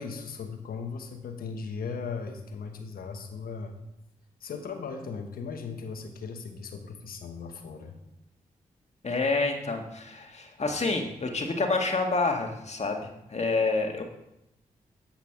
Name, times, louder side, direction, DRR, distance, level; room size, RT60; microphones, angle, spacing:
voice 1, 0.0-3.8 4.4-8.0, left 5 dB, 75° left, 6 dB, 1.2 m, -37 dB
voice 2, 9.0-14.0, left 3 dB, 45° left, 3 dB, 1.9 m, -28 dB
8.6 x 5.9 x 6.0 m, 0.85 s
supercardioid pair, 40°, 15 cm